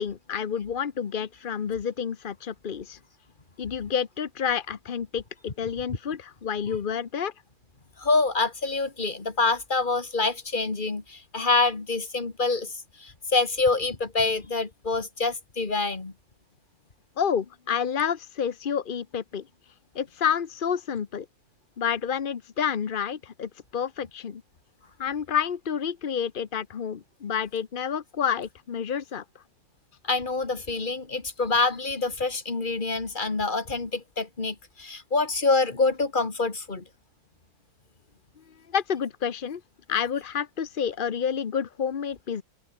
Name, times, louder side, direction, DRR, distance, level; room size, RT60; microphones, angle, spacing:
voice 1, 0.0-3.0 3.6-7.3 17.2-19.5 19.9-21.3 21.8-24.4 25.0-29.4 38.7-39.6 39.9-42.4, left 7 dB, 50° left, 0.6 m, -29 dB
voice 2, 8.0-16.1 30.0-36.8, left 3 dB, 25° left, 2.2 m, -26 dB
omnidirectional pair, 2.1 m